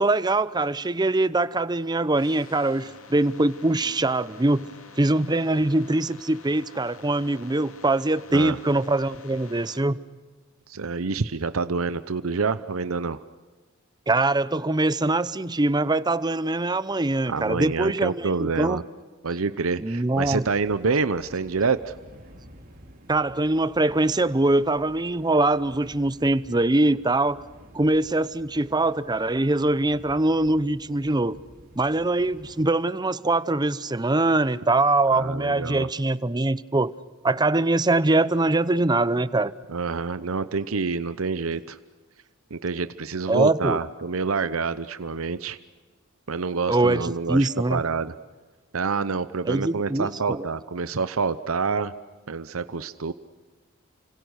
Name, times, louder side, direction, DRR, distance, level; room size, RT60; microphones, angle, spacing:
voice 1, 0.0-4.7 5.0-10.0 14.1-18.8 19.8-20.4 23.1-27.5 27.7-31.4 31.8-36.9 37.2-39.5 43.3-43.8 46.7-47.8 49.4-50.4, right 2 dB, 20° right, 0.7 m, -23 dB
sound 1, 2.1-9.8, left 3 dB, 80° left, 2.9 m, -48 dB
voice 2, 10.7-13.2 17.3-18.8 19.2-21.9 35.1-35.9 39.7-41.8 42.5-45.6 46.3-48.1 48.7-51.9 52.3-53.1, right 4 dB, 85° right, 0.8 m, -27 dB
sound 2, 20.1-32.5, equal, 45° right, 3.8 m, -51 dB
29.5 x 26.0 x 6.5 m
head